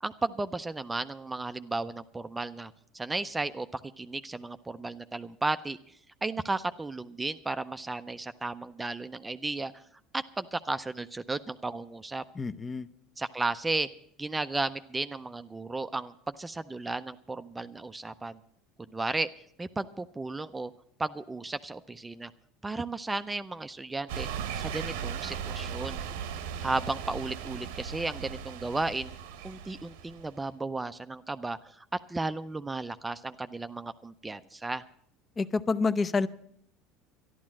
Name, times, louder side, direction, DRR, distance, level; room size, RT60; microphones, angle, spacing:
voice 1, 0.0-5.8 6.2-9.8 10.1-12.2 13.2-13.9 14.2-18.4 18.8-19.3 19.6-20.7 21.0-22.3 22.6-24.3 24.6-26.0 26.6-29.1 29.4-34.8, right 3 dB, 15° right, 11 dB, 0.5 m, -34 dB
voice 2, 12.4-12.9 35.4-36.3, left 4 dB, 25° left, 14 dB, 0.6 m, -28 dB
sound 1, 24.1-30.3, right 7 dB, 85° right, 0.9 m, -37 dB
12.0 x 11.5 x 7.4 m, 0.67 s
supercardioid pair, 100°, 0 cm